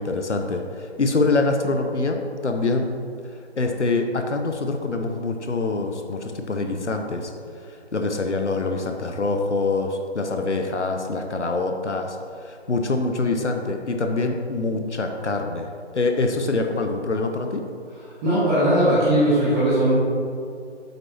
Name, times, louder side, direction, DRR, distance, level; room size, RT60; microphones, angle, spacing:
voice 1, 0.0-2.9 3.6-7.3 7.6-17.6, left 3 dB, 80° left, 4 dB, 1.0 m, -25 dB
voice 2, 18.2-19.9, right 1 dB, 10° right, -12 dB, 1.3 m, -19 dB
9.5 x 7.7 x 3.0 m, 2.3 s
figure-of-eight pair, 150°, 35 cm